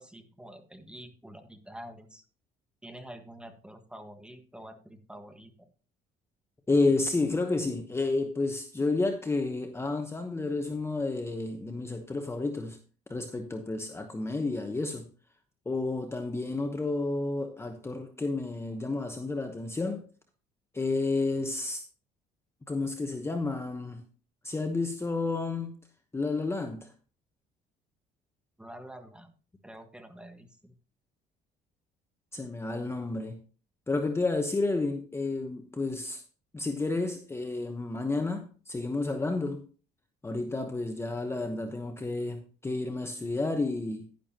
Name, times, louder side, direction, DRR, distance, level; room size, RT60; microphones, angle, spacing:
voice 1, 0.0-2.2 2.8-5.7 28.6-29.3 29.6-30.7, right 1 dB, 5° right, 1.5 m, -47 dB
voice 2, 6.7-12.8 13.1-15.1 15.7-20.0 20.7-21.8 22.7-24.0 24.4-25.8 26.1-26.9 32.3-33.4 33.9-36.2 36.5-39.6 40.2-44.1, left 3 dB, 15° left, 1.0 m, -31 dB
10.5 x 10.5 x 2.9 m
cardioid pair, 110°, 17 cm